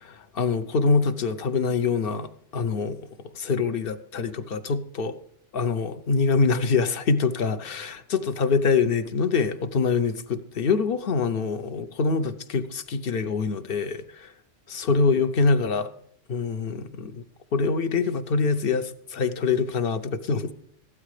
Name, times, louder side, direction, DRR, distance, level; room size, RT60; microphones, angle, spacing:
voice 1, 0.3-3.0 3.3-5.1 5.5-14.3 14.7-15.9 16.3-17.2 17.5-20.5, left 4 dB, 55° left, 11 dB, 0.9 m, -25 dB
15.5 x 12.5 x 3.3 m, 0.68 s
omnidirectional pair, 1.3 m